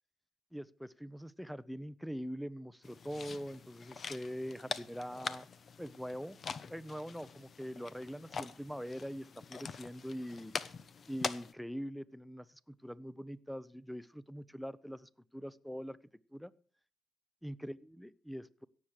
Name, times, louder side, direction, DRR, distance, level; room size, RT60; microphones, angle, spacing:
voice 1, 0.5-5.5 5.8-6.4 6.7-10.7 11.1-16.0 16.3-16.5 17.4-18.6, equal, ahead, 18 dB, 0.7 m, -43 dB
sound 1, 2.8-11.5, left 5 dB, 50° left, 0.9 m, -44 dB
17.0 x 7.4 x 6.5 m, 0.43 s
cardioid pair, 90°, 0 cm